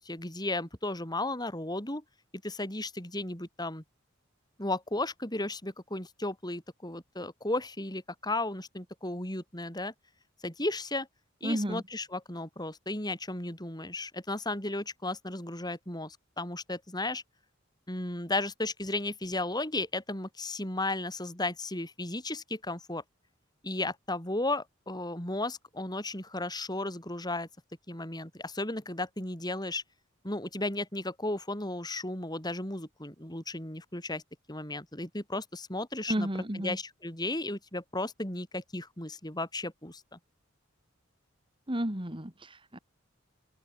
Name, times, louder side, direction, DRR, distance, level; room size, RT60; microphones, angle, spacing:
voice 1, 0.0-2.0 2.4-3.8 4.6-9.9 10.4-11.1 11.4-17.2 17.9-23.0 23.6-27.5 27.9-29.8 30.2-34.2 34.5-36.3 36.5-40.2, left 2 dB, 20° left, 6.5 m, -34 dB
voice 2, 11.4-11.8 36.1-36.8 41.7-42.8, equal, 25° right, 2.9 m, -32 dB
open air
head